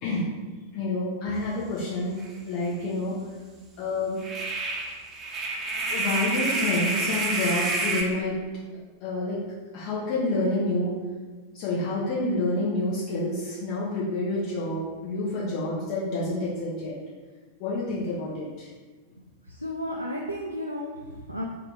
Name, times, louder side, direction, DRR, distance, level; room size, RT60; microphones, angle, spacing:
voice 1, 0.7-2.2 2.4-3.2 3.8-4.2 5.9-8.4 9.0-9.4 9.7-11.0 11.5-17.0 17.6-18.7, left 2 dB, 45° left, -7 dB, 0.8 m, -28 dB
sound 1, 2.2-2.3 2.6-2.7 4.2-8.0, right 2 dB, 25° right, 0.7 m, -28 dB
voice 2, 19.5-21.4, equal, 90° right, -2 dB, 0.3 m, -33 dB
3.7 x 2.3 x 4.4 m, 1.4 s
figure-of-eight pair, 90°, 0 cm